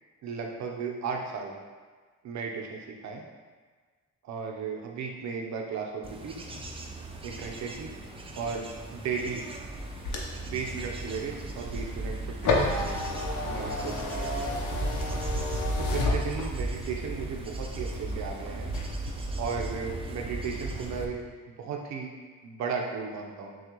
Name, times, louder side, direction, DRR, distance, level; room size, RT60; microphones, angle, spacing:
voice 1, 0.2-1.5 2.2-3.2 4.2-6.4 7.2-7.9 8.3-9.4 10.5-13.0 13.4-14.9 15.8-18.7 19.4-21.2 21.5-22.1 22.4-23.6, right 5 dB, 65° right, 1 dB, 0.7 m, -35 dB
Bird / Insect / Wind, 6.0-21.1, right 2 dB, 20° right, 0.5 m, -36 dB
sound 1, 9.8-16.8 17.3-18.3 18.6-19.1, left 3 dB, 80° left, 0.7 m, -32 dB
5.9 x 2.4 x 3.0 m, 1.5 s
cardioid pair, 90°, 30 cm